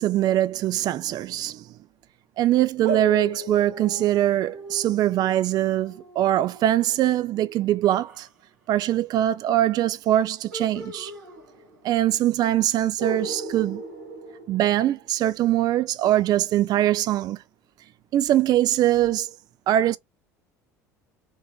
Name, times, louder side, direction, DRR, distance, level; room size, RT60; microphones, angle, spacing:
voice 1, 0.0-1.7 2.4-8.3 8.7-11.1 11.8-13.8 14.5-17.4 18.1-19.3 19.7-20.0, right 13 dB, 50° right, 0.4 m, -22 dB
sound 1, 2.8-8.3 10.5-12.0 12.2-12.3 13.0-15.2, right 2 dB, 80° right, 1.6 m, -36 dB
3.8 x 2.5 x 3.8 m
hypercardioid pair, 70°, 9 cm